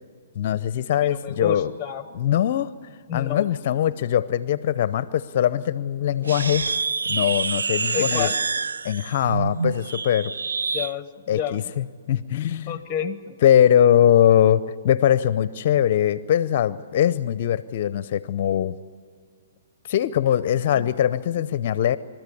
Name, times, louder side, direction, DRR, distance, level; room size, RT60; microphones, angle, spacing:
voice 1, 0.4-1.7 2.1-2.7 3.1-6.6 7.1-8.3 8.8-10.3 11.3-12.8 13.4-18.8 19.9-22.0, left 10 dB, 50° left, 15 dB, 0.6 m, -21 dB
voice 2, 0.9-2.0 3.1-3.5 7.9-8.4 10.7-11.6 12.7-13.4 20.8-20.9, left 8 dB, 15° left, 11 dB, 1.1 m, -30 dB
sound 1, 6.2-10.9, right 4 dB, 90° right, 0.5 m, -27 dB
29.5 x 13.5 x 8.5 m, 2.1 s
hypercardioid pair, 140°, 0 cm